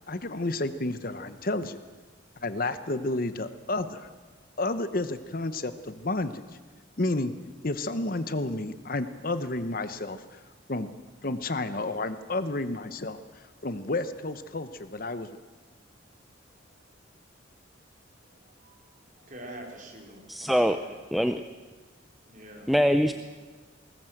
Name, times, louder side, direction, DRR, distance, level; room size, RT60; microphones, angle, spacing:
voice 1, 0.1-1.8 2.4-4.1 4.6-6.4 7.0-7.3 7.6-10.4 10.7-10.9 11.2-15.3, left 2 dB, 45° left, 11 dB, 1.0 m, -31 dB
voice 2, 18.2-18.8 19.2-20.9 22.2-22.7, right 1 dB, 40° right, 1 dB, 4.4 m, -46 dB
voice 3, 20.3-20.8 21.1-21.4 22.7-23.1, equal, ahead, 8 dB, 0.6 m, -23 dB
21.0 x 19.0 x 7.9 m, 1.3 s
head